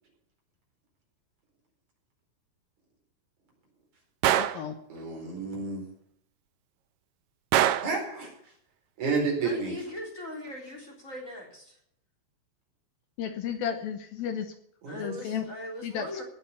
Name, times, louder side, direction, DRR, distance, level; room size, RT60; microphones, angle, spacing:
Gunshot gunfire, 4.2-4.7 7.5-8.0, right 12 dB, 75° right, 2.2 m, -23 dB
voice 1, 4.4-4.7 13.2-14.5 14.9-15.4 15.8-16.2, left 8 dB, 75° left, 7 dB, 2.6 m, -33 dB
voice 2, 4.9-5.9 7.8-8.3 9.0-9.7 14.8-15.0, right 4 dB, 45° right, 0 dB, 5.7 m, -30 dB
voice 3, 9.4-11.8 14.9-16.2, left 1 dB, 20° left, 0 dB, 3.6 m, -40 dB
18.0 x 7.5 x 6.9 m, 0.70 s
omnidirectional pair, 4.6 m